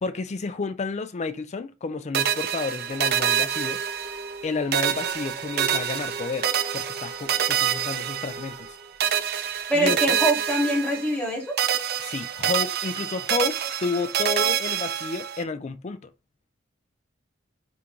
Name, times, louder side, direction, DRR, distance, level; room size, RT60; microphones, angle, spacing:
voice 1, 0.0-3.8 4.4-8.5 9.7-10.2 12.0-16.1, left 4 dB, 35° left, 0.4 m, -31 dB
sound 1, 2.1-4.4 4.7-8.7 9.0-11.3 11.6-15.4, right 9 dB, 55° right, 0.5 m, -26 dB
sound 2, 2.9-9.8, right 1 dB, 25° right, 1.0 m, -41 dB
voice 2, 9.7-11.5, right 1 dB, 5° left, 1.5 m, -24 dB
3.8 x 3.4 x 3.0 m
head